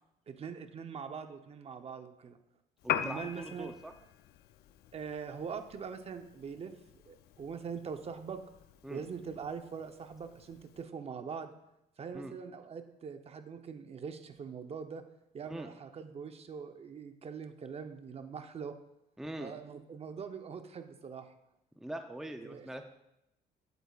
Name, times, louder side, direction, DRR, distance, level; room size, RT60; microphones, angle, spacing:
voice 1, 0.3-2.4 3.0-3.7 4.9-6.7 7.1-8.4 8.9-11.5 12.0-15.0 15.3-18.7 19.4-21.3 22.4-22.7, right 6 dB, 35° right, 7 dB, 0.7 m, -42 dB
Piano, 2.8-10.8, left 11 dB, 70° left, 0.4 m, -43 dB
voice 2, 2.8-3.9 8.8-9.0 12.1-12.3 15.5-15.7 19.2-19.5 21.8-22.8, right 1 dB, ahead, 6 dB, 0.5 m, -42 dB
11.5 x 8.1 x 2.4 m, 0.84 s
cardioid pair, 110°, 17 cm